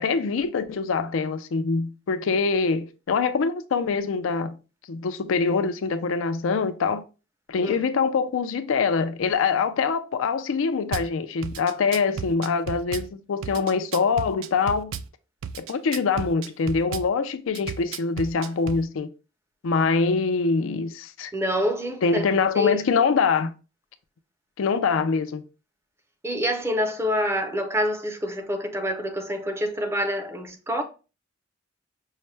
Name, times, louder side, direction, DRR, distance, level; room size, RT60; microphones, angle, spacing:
voice 1, 0.0-4.6 4.9-7.0 7.5-14.9 15.6-19.1 19.6-21.3 22.0-23.5 24.6-25.4, left 5 dB, 80° left, 0.4 m, -24 dB
Drum kit / Bass drum, 10.9-11.1 11.4-13.1 13.4-15.1 15.4-17.1 17.5-18.8, right 7 dB, 75° right, 0.3 m, -33 dB
voice 2, 21.3-22.2 22.5-22.8 26.2-30.8, equal, 15° right, 0.5 m, -26 dB
5.5 x 2.1 x 3.2 m
head